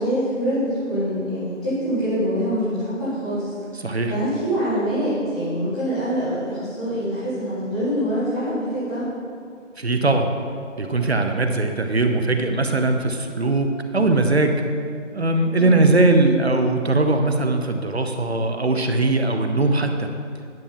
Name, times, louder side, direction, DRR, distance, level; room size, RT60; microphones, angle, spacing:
voice 1, 0.0-3.5 4.1-9.1 15.5-15.9, equal, 5° left, -18 dB, 1.9 m, -25 dB
voice 2, 3.8-4.1 9.8-10.3 10.8-14.6 15.1-20.1, right 2 dB, 55° right, 5 dB, 0.9 m, -20 dB
10.5 x 6.1 x 5.7 m, 2.3 s
figure-of-eight pair, 180°, 38 cm